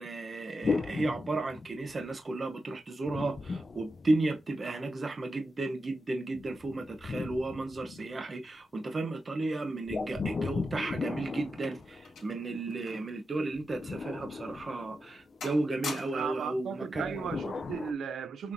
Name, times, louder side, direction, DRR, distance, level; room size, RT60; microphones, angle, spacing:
voice 1, 0.0-17.3, right 2 dB, 35° right, 0.7 m, -34 dB
sound 1, 0.6-2.1 3.1-4.7 6.4-8.4 9.9-12.4 13.5-15.4 16.9-17.9, left 4 dB, 40° left, 0.4 m, -36 dB
sound 2, 11.1-13.2 13.5-13.7 14.3-14.4 14.9-15.2 15.4-16.5 17.4-17.7, left 4 dB, 90° left, 1.7 m, -44 dB
voice 2, 16.1-18.5, right 7 dB, 90° right, 0.5 m, -36 dB
5.8 x 3.2 x 2.6 m
wide cardioid pair, 140°, 0 cm